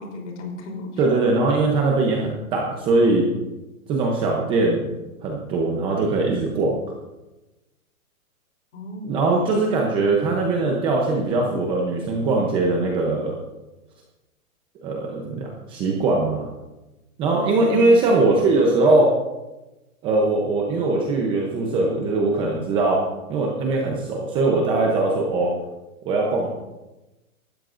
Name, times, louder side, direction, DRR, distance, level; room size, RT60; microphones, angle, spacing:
voice 1, 0.0-1.0 8.7-9.4 17.6-17.9, left 2 dB, 50° left, 1 dB, 3.6 m, -34 dB
voice 2, 1.0-3.3 3.9-4.8 5.2-6.7 9.0-13.4 14.8-16.5 17.2-19.1 20.0-23.0 23.3-25.5 26.1-26.5, right 3 dB, 10° right, -1 dB, 0.7 m, -21 dB
18.0 x 13.0 x 2.6 m, 1.0 s
hypercardioid pair, 160°, 44 cm